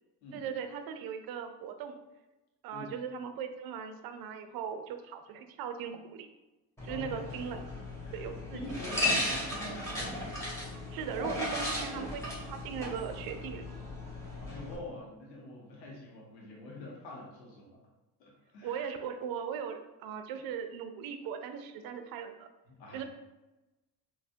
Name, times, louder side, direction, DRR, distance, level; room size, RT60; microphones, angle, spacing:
voice 1, 0.3-2.0 2.6-6.3 6.8-7.6 8.1-8.8 9.1-9.2 10.9-13.7 18.6-22.5 22.9-23.0, right 7 dB, 50° right, 7 dB, 0.5 m, -39 dB
ice machine, 6.8-14.8, left 1 dB, 5° left, 1.3 m, -36 dB
voice 2, 6.9-7.6 8.0-8.3 8.5-10.0 14.4-17.8 18.2-18.9 22.7-23.0, left 1 dB, 90° left, -3 dB, 0.8 m, -45 dB
3.9 x 2.2 x 2.7 m, 1.0 s
hypercardioid pair, 55°, 50 cm